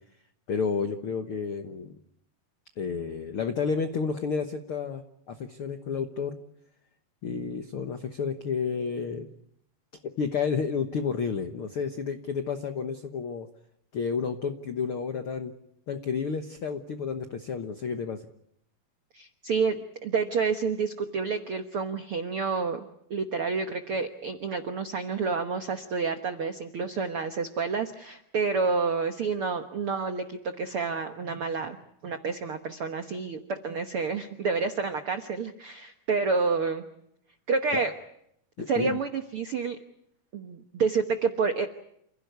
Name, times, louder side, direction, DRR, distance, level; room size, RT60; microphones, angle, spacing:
voice 1, 0.5-2.0 2.8-6.4 7.2-9.3 10.2-13.5 13.9-15.5 15.9-18.2 37.7-37.9 38.6-39.0, left 6 dB, 85° left, 7 dB, 1.2 m, -31 dB
voice 2, 19.1-31.8 32.0-36.8 37.5-37.9 38.7-39.8 40.3-41.7, right 4 dB, 80° right, 7 dB, 1.2 m, -29 dB
29.0 x 16.5 x 9.4 m, 0.75 s
omnidirectional pair, 4.4 m